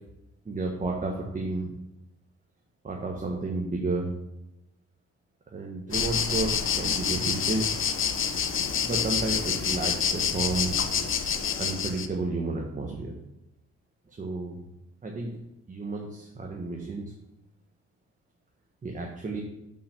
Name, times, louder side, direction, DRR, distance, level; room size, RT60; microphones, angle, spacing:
voice 1, 0.4-1.7 2.8-4.1 5.5-6.5 6.8-7.7 8.8-10.8 11.6-13.1 14.1-14.6 15.0-15.4 15.7-17.1 18.8-19.4, right 3 dB, 25° right, 0 dB, 1.1 m, -31 dB
sound 1, 5.9-12.1, left 7 dB, 45° left, 0.7 m, -27 dB
5.6 x 5.0 x 5.7 m, 0.91 s
cardioid pair, 90°, 30 cm